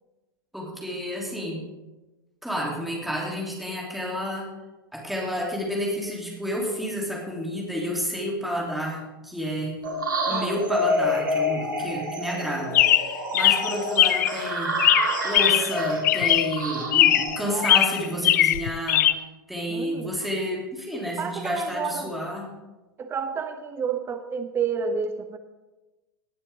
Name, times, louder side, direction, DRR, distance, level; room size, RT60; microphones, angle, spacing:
voice 1, 0.5-1.6 2.4-4.5 4.9-9.8 10.3-14.8 15.2-22.4, equal, ahead, -3 dB, 3.2 m, -30 dB
sound 1, 9.8-18.2, left 1 dB, 70° right, 2.7 m, -28 dB
voice 2, 10.3-10.6 17.4-17.7 19.7-20.2 21.2-22.1 23.0-25.4, right 6 dB, 20° right, 9 dB, 1.0 m, -30 dB
Chirp tweet, 12.7-14.4 14.8-15.8 16.0-16.6 16.9-17.4 17.6-19.1, left 13 dB, 55° left, 0.5 m, -20 dB
18.5 x 9.7 x 3.7 m, 1.1 s
figure-of-eight pair, 95°, 11 cm